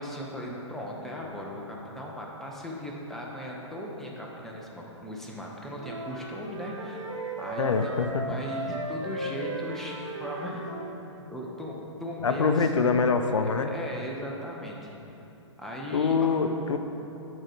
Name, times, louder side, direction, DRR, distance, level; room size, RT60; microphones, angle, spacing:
voice 1, 0.0-7.1 7.4-10.7 11.2-12.7 13.7-14.9 15.6-16.2, equal, ahead, -3 dB, 0.7 m, -37 dB
sound 1, 5.8-11.0, right 2 dB, 80° right, 1.0 m, -36 dB
voice 2, 7.6-8.2 12.2-13.7 15.9-16.8, left 5 dB, 80° left, 7 dB, 0.5 m, -24 dB
7.4 x 3.8 x 4.9 m, 3.0 s
figure-of-eight pair, 120°, 16 cm